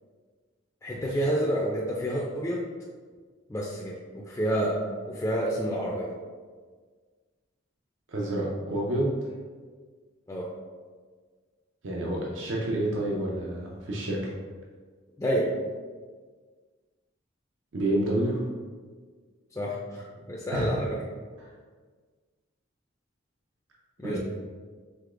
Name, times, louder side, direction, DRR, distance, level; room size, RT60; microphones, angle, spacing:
voice 1, 0.8-2.7 3.5-6.1 10.3-10.5 15.2-15.5 19.6-21.0 24.0-24.2, right 1 dB, 15° left, -4 dB, 0.3 m, -29 dB
voice 2, 8.1-9.2 11.8-14.2 17.7-18.5 20.5-20.8 21.4-21.5 24.0-24.2, right 1 dB, 70° right, -2 dB, 0.6 m, -28 dB
4.9 x 3.7 x 2.5 m, 1.5 s
head